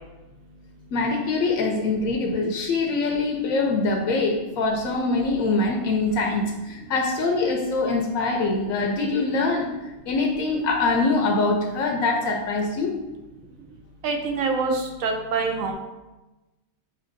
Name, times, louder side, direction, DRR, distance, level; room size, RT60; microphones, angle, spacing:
voice 1, 0.9-13.0, left 3 dB, 75° left, 2 dB, 1.0 m, -24 dB
voice 2, 14.0-15.7, right 4 dB, 75° right, 3 dB, 1.1 m, -25 dB
6.6 x 2.9 x 2.5 m, 1.1 s
omnidirectional pair, 1.4 m